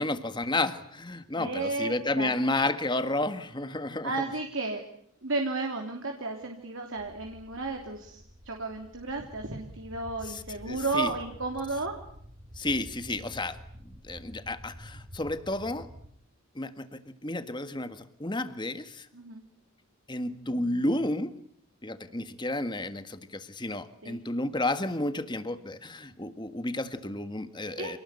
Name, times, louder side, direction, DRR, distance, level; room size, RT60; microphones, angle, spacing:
voice 1, 0.0-4.1 10.3-11.1 12.6-13.6 14.1-15.9 16.5-16.8 17.2-19.1 20.1-21.3 21.8-28.0, left 2 dB, 20° left, 10 dB, 1.6 m, -31 dB
voice 2, 1.4-2.7 4.0-4.8 5.2-12.0 19.1-19.4 24.0-24.2 27.8-27.9, right 3 dB, 65° right, 2 dB, 3.2 m, -33 dB
sound 1, 6.9-16.1, equal, 40° right, 4.0 m, -49 dB
28.0 x 19.5 x 9.9 m, 0.67 s
head